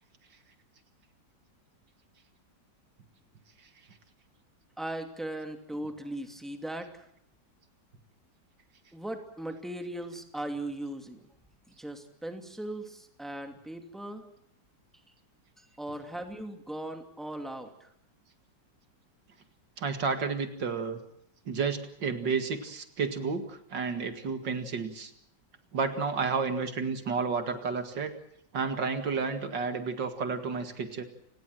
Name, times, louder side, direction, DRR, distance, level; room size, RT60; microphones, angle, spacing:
voice 1, 4.8-7.1 8.9-11.3 11.7-14.2 15.6-17.9, right 1 dB, ahead, 5 dB, 2.6 m, -38 dB
voice 2, 19.8-21.0 21.5-25.1 25.7-28.1 28.5-31.0, right 5 dB, 80° right, 8 dB, 2.7 m, -31 dB
29.5 x 19.5 x 7.7 m, 0.70 s
omnidirectional pair, 1.9 m